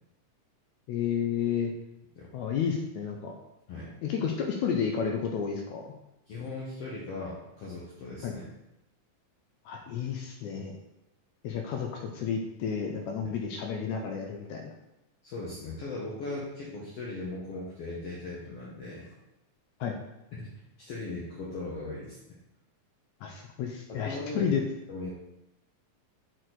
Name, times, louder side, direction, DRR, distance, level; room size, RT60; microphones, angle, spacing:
voice 1, 0.9-1.7 2.3-3.3 4.0-5.9 8.2-8.3 9.6-10.7 11.4-14.7 19.8-20.0 23.2-24.6, left 7 dB, 90° left, 2 dB, 1.6 m, -31 dB
voice 2, 6.3-8.4 15.2-19.1 20.3-20.5 20.8-22.2 23.9-24.5 24.9-25.1, left 2 dB, 70° left, -5 dB, 1.5 m, -38 dB
6.2 x 4.4 x 3.8 m, 0.90 s
omnidirectional pair, 3.9 m